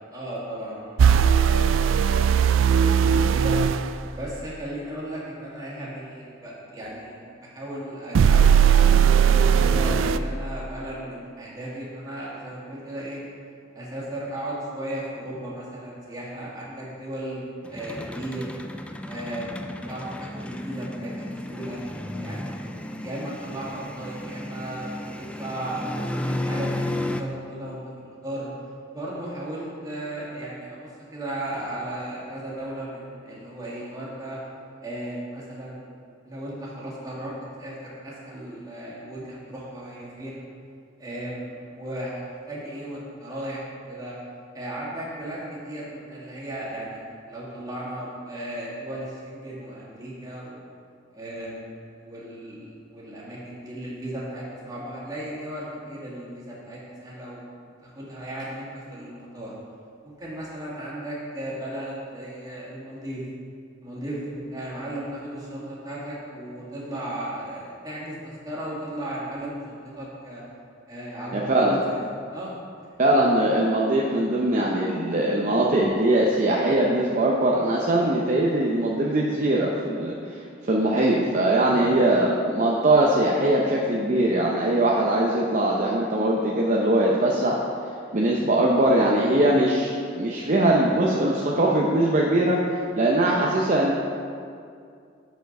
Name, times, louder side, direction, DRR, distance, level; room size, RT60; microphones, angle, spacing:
voice 1, 0.0-3.6 4.1-13.2 13.7-18.5 19.1-19.6 19.9-21.8 22.2-22.7 23.0-28.5 28.9-34.4 34.8-35.9 36.2-40.4 41.0-44.1 44.5-50.6 51.1-51.7 52.0-57.4 57.8-59.5 60.0-63.2 63.8-70.4 70.9-72.0 72.3-72.6 73.1-73.4 81.7-82.0, right 1 dB, 20° right, -7 dB, 2.0 m, -36 dB
sound 1, 1.0-3.8 8.2-10.2, right 7 dB, 90° right, 0.3 m, -18 dB
sound 2, 17.6-27.2, left 1 dB, 5° left, 0.3 m, -33 dB
voice 2, 71.3-71.8 73.0-80.1 80.7-87.5 88.1-92.6 93.0-94.0, right 1 dB, 40° right, -3 dB, 0.7 m, -21 dB
7.0 x 6.7 x 5.3 m, 2.3 s
head